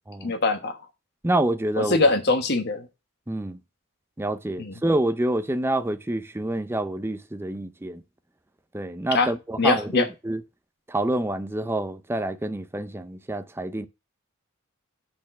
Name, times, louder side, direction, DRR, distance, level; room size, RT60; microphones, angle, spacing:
voice 1, 0.2-0.8 1.8-2.9 4.6-4.7 9.1-9.3 9.6-10.1, left 3 dB, 50° left, 1.3 m, -22 dB
voice 2, 1.2-2.0 3.3-3.6 4.2-8.0 8.7-10.4 10.9-13.9, right 1 dB, 10° right, 0.4 m, -27 dB
6.1 x 4.2 x 5.9 m
head